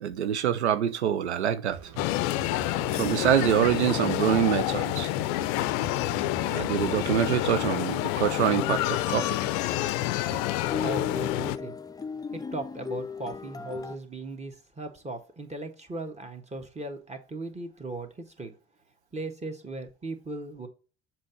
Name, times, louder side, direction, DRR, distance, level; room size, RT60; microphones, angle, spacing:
voice 1, 0.0-1.9 2.5-2.6 2.9-5.1 6.5-9.4, right 10 dB, 90° right, 0.5 m, -25 dB
sound 1, 1.7-7.9 9.6-11.0, right 8 dB, 50° right, 1.0 m, -43 dB
sound 2, 2.0-11.6, left 17 dB, 65° left, 0.5 m, -28 dB
sound 3, 8.4-14.0, left 5 dB, 10° left, 0.5 m, -37 dB
voice 2, 10.8-11.7 12.3-18.5 19.1-20.7, right 2 dB, 20° right, 1.7 m, -38 dB
7.4 x 2.9 x 5.8 m
hypercardioid pair, 60°, 33 cm